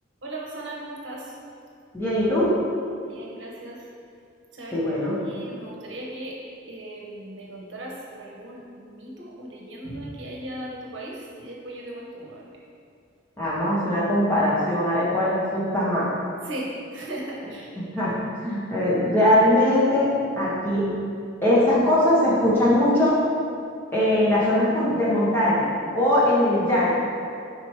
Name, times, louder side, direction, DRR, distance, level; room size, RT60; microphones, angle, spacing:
voice 1, 0.2-1.4 3.1-3.9 4.5-4.8 5.2-6.4 6.7-12.6 16.4-17.7, right 1 dB, 65° right, -3 dB, 0.9 m, -37 dB
voice 2, 1.9-2.6 4.7-5.1 13.4-16.1 17.9-18.1 18.4-20.1 20.4-20.9 21.4-23.2 23.9-25.7 25.9-27.0, left 1 dB, 10° left, -9 dB, 1.3 m, -21 dB
5.1 x 4.2 x 4.7 m, 2.4 s
head